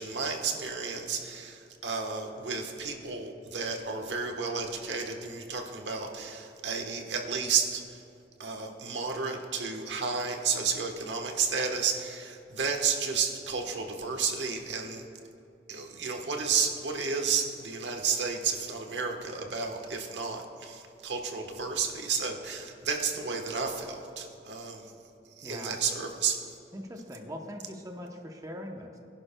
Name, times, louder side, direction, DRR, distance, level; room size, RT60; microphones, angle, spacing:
voice 1, 0.0-8.0 8.4-15.1 15.7-24.9 25.4-26.4, right 5 dB, 85° right, 3 dB, 1.2 m, -32 dB
voice 2, 25.4-25.8 26.7-29.0, equal, 20° right, 2 dB, 0.8 m, -41 dB
22.0 x 11.0 x 2.2 m, 2.7 s
head